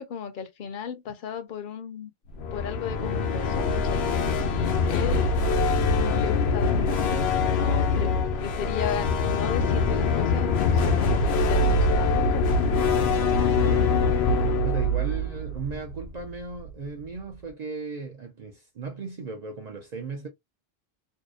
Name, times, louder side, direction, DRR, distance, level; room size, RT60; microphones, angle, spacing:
voice 1, 0.0-2.1 2.5-5.3 5.9-12.6, left 7 dB, 60° left, 0.7 m, -35 dB
sound 1, 2.3-16.3, left 3 dB, 90° left, 0.9 m, -23 dB
voice 2, 13.6-13.9 14.6-20.3, right 4 dB, 50° right, 0.6 m, -36 dB
2.7 x 2.1 x 2.4 m
omnidirectional pair, 1.0 m